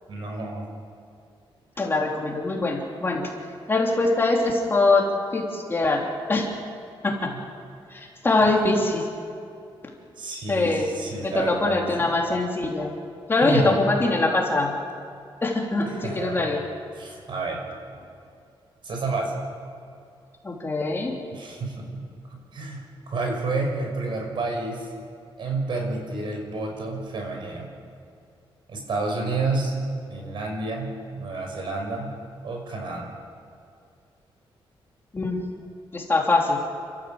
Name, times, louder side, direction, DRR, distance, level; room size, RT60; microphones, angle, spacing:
voice 1, 0.1-0.7 7.3-7.4 10.2-12.1 13.4-13.8 15.8-16.5 17.0-17.6 18.8-19.4 21.3-22.0 22.3-24.9 25.4-27.7 28.7-29.8 30.1-32.2 32.4-33.1, right 3 dB, 60° right, 2 dB, 5.7 m, -30 dB
voice 2, 1.8-3.3 3.7-5.0 5.3-6.5 7.0-7.3 7.9-9.1 10.5-10.9 11.2-12.9 13.3-14.8 15.4-16.6 20.4-21.1 35.1-35.4 35.9-36.6, left 2 dB, 25° left, -1 dB, 3.2 m, -23 dB
29.5 x 14.0 x 7.9 m, 2.5 s
wide cardioid pair, 135°, 9 cm